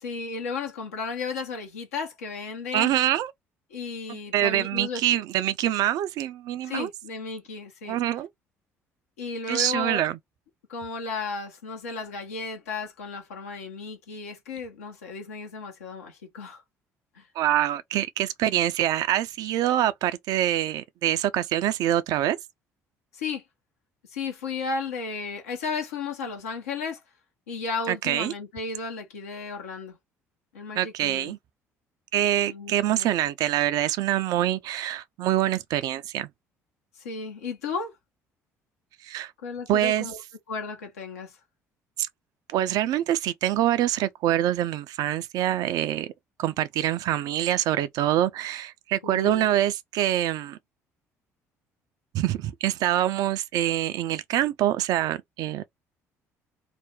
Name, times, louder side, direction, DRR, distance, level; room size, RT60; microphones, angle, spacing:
voice 1, 0.0-2.9 3.7-5.0 6.6-8.0 9.2-10.0 10.7-16.6 17.1-17.3 23.1-23.4 24.1-27.0 27.5-30.0 30.5-31.3 32.5-33.1 37.0-37.9 39.4-40.2 40.5-41.4 49.0-49.6, left 4 dB, 75° left, 0.8 m, -34 dB
voice 2, 2.7-3.3 4.1-6.9 7.9-8.3 9.5-10.2 17.4-22.4 27.9-28.3 30.8-31.4 32.1-36.3 39.0-39.3 39.7-40.1 42.0-42.1 42.5-46.1 46.4-50.6 52.1-55.7, right 12 dB, 55° right, 0.4 m, -25 dB
2.5 x 2.1 x 3.5 m
figure-of-eight pair, 50°, 8 cm